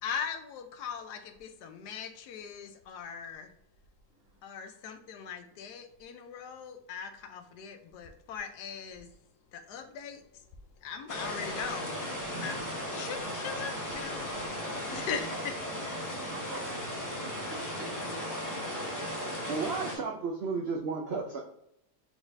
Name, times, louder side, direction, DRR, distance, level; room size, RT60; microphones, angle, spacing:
voice 1, 0.0-3.5 4.4-9.1 9.5-10.2 10.8-12.0 12.4-12.6 12.9-14.3 14.7-15.8, left 6 dB, 85° left, 8 dB, 1.2 m, -40 dB
sound 1, 11.1-20.0, equal, 15° left, 0.8 m, -36 dB
voice 2, 14.9-15.4 16.3-16.7 17.2-19.5, right 3 dB, 60° right, -1 dB, 1.5 m, -47 dB
voice 3, 19.5-21.4, right 4 dB, 80° right, 2 dB, 0.5 m, -33 dB
4.6 x 4.1 x 2.6 m, 0.75 s
omnidirectional pair, 1.7 m